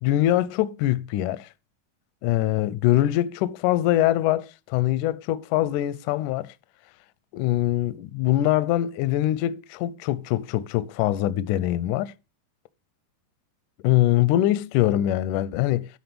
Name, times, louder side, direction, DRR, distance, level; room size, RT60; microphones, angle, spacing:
voice 1, 0.0-1.5 2.2-6.5 7.3-12.1 13.8-15.9, left 14 dB, 80° left, 1.8 m, -23 dB
12.0 x 4.2 x 6.9 m
omnidirectional pair, 4.2 m